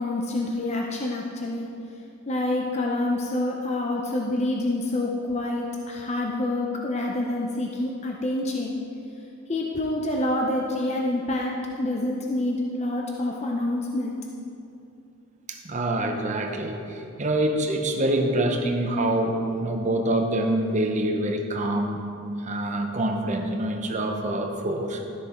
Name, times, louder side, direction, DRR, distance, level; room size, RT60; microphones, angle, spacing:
voice 1, 0.0-1.7 2.3-8.8 9.5-14.2, left 1 dB, 30° left, -1 dB, 0.7 m, -27 dB
voice 2, 15.5-22.0 22.4-25.0, right 1 dB, 35° right, 3 dB, 0.9 m, -26 dB
12.5 x 6.8 x 4.4 m, 2.7 s
head